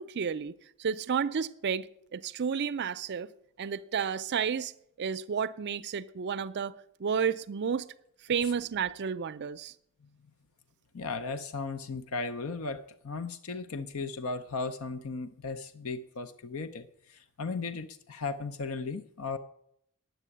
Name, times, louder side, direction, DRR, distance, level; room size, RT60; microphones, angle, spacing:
voice 1, 0.0-1.9 2.1-3.3 3.6-4.7 5.0-6.7 7.0-7.9 8.3-9.7, right 6 dB, 50° right, 0.4 m, -31 dB
voice 2, 10.9-19.4, left 4 dB, 65° left, 0.6 m, -36 dB
10.0 x 8.0 x 9.8 m
head